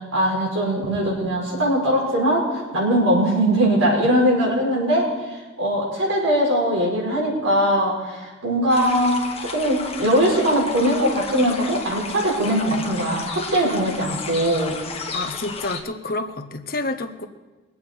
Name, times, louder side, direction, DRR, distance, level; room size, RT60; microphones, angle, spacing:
voice 1, 0.1-14.8, equal, 80° right, -4 dB, 5.2 m, -21 dB
sound 1, 8.7-15.8, left 4 dB, 30° left, 1.2 m, -33 dB
voice 2, 15.1-17.3, left 2 dB, 45° left, 7 dB, 0.9 m, -29 dB
22.5 x 8.4 x 4.5 m, 1.2 s
head